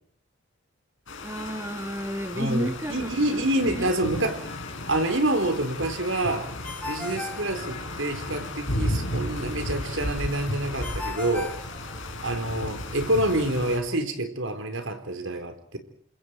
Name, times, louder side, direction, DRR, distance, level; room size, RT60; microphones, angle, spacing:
sound 1, 1.1-13.8, left 1 dB, 70° left, 5.3 m, -34 dB
voice 1, 1.2-3.9, equal, 15° right, 6 dB, 1.8 m, -32 dB
voice 2, 2.3-4.5 4.9-6.5 6.9-11.6 12.2-15.8, right 1 dB, 75° right, 6 dB, 4.4 m, -27 dB
Ringtone, 6.6-8.3 10.8-12.4, left 2 dB, 5° left, 5.3 m, -37 dB
29.0 x 26.5 x 4.7 m, 0.65 s
head